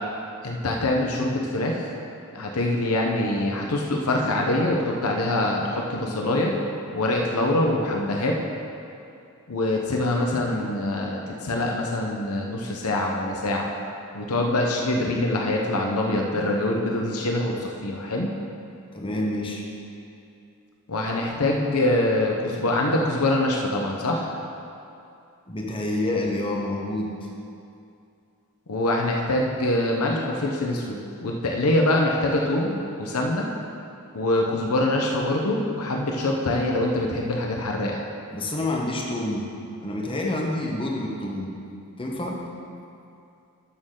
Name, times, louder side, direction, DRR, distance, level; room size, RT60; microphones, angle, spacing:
voice 1, 0.4-1.9 2.3-6.5 6.9-8.4 9.5-13.7 14.1-18.3 20.9-24.3 28.7-33.5 34.1-38.0, left 1 dB, 80° left, 0 dB, 0.9 m, -24 dB
voice 2, 18.9-19.6 25.5-27.1 38.3-39.5 39.8-41.5 42.0-42.4, left 1 dB, 25° left, -1 dB, 1.1 m, -28 dB
13.0 x 6.4 x 3.8 m, 2.5 s
head